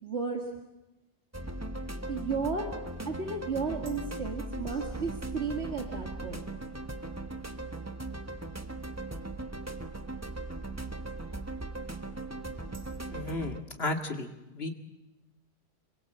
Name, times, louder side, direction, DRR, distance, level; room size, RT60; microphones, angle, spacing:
voice 1, 0.0-0.4 2.1-2.7 3.0-6.4, right 4 dB, 80° right, 2 dB, 2.4 m, -33 dB
sound 1, 1.3-13.6, right 2 dB, 15° right, 1.3 m, -38 dB
voice 2, 13.1-14.7, left 2 dB, 65° left, 4 dB, 2.4 m, -34 dB
27.0 x 23.0 x 7.9 m, 1.0 s
omnidirectional pair, 1.1 m